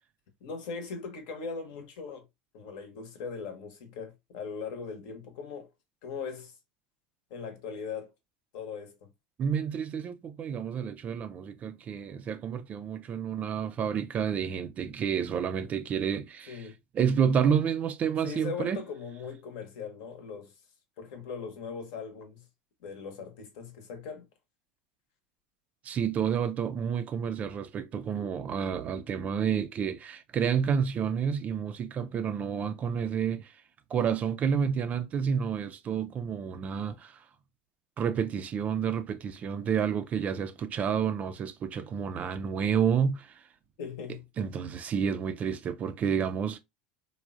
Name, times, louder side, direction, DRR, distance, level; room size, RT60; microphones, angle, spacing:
voice 1, 0.4-2.3 2.5-5.7 6.0-6.5 7.3-8.1 8.5-9.1 16.5-16.8 18.2-20.5 21.0-22.4 22.8-24.3 43.8-44.3, left 5 dB, 60° left, 0.9 m, -39 dB
voice 2, 9.4-16.7 16.9-18.8 25.8-33.6 33.9-37.3 38.0-43.4 44.4-46.6, right 7 dB, 35° right, 0.4 m, -30 dB
3.4 x 2.1 x 2.4 m
hypercardioid pair, 80°, 4 cm